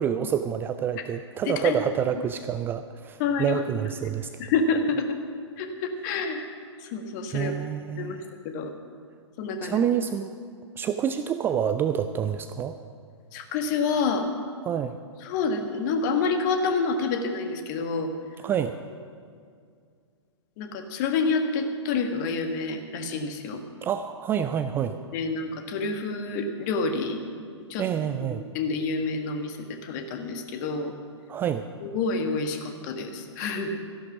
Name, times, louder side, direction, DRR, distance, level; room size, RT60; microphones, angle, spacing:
voice 1, 0.0-4.4 7.3-8.3 9.6-10.4 10.8-12.8 14.6-15.0 18.4-18.8 23.8-24.9 27.8-28.4 31.3-31.6, right 9 dB, 15° right, 9 dB, 0.3 m, -27 dB
voice 2, 1.5-1.8 3.2-3.6 4.4-5.1 5.6-6.5 6.8-7.5 8.0-8.2 8.4-8.7 9.4-9.8 13.3-14.3 15.2-18.1 20.6-23.6 25.1-27.2 27.7-27.8 28.5-30.9 31.8-33.8, left 4 dB, 40° left, 6 dB, 1.5 m, -28 dB
13.5 x 11.0 x 6.0 m, 2.2 s
figure-of-eight pair, 110°, 15 cm